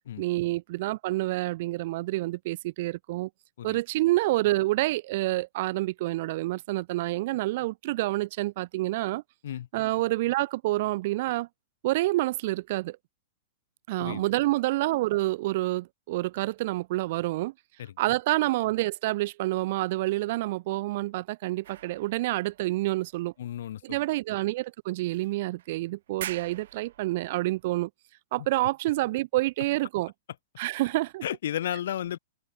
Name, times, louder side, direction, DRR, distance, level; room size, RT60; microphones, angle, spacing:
voice 1, 0.2-3.3 3.6-9.2 9.7-11.5 11.8-13.0 13.9-17.5 18.0-23.3 23.8-27.9 28.3-30.1 30.6-31.2, right 18 dB, 45° right, 1.3 m, -28 dB
sound 1, 21.6-23.6 24.3-24.4 25.1-25.7 26.1-27.6, right 12 dB, 60° right, 1.9 m, -44 dB
voice 2, 23.4-24.0 28.4-28.5 31.2-32.2, left 11 dB, 65° left, 2.9 m, -33 dB
hypercardioid pair, 165°, 0 cm